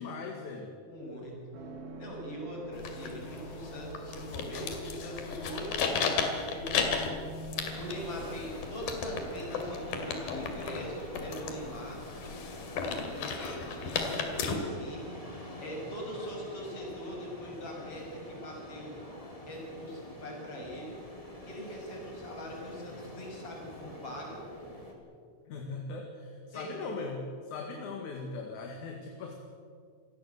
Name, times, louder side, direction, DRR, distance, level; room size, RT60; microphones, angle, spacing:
voice 1, 0.0-0.7 25.5-29.3, left 4 dB, 60° left, 2 dB, 3.1 m, -39 dB
voice 2, 0.9-1.4 2.0-5.9 6.5-6.9 7.8-12.0 12.8-15.0 15.6-19.0 19.5-21.0 21.5-24.4 26.5-27.1, equal, 40° left, -1 dB, 7.1 m, -42 dB
sound 1, 1.5-10.1 10.3-10.4, equal, 90° right, 4.5 m, -46 dB
sound 2, 2.7-14.5, left 5 dB, 80° left, 4.1 m, -35 dB
sound 3, 7.5-24.9, left 1 dB, 10° left, 3.2 m, -45 dB
27.0 x 17.0 x 7.9 m, 2.2 s
omnidirectional pair, 4.2 m